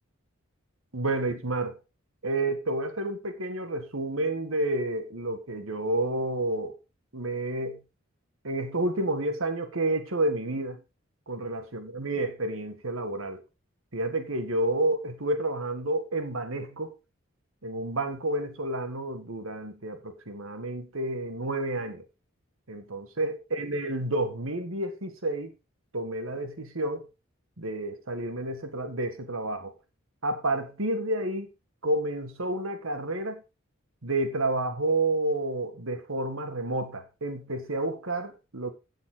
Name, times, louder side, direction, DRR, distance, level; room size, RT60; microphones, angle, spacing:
voice 1, 0.9-1.8 2.2-6.8 7.1-7.8 8.4-10.8 11.3-13.4 13.9-16.9 17.6-22.0 22.7-25.5 25.9-27.1 27.6-29.7 30.2-31.5 31.8-33.4 34.0-38.7, right 2 dB, 70° right, 1.8 m, -30 dB
14.0 x 7.6 x 3.9 m
head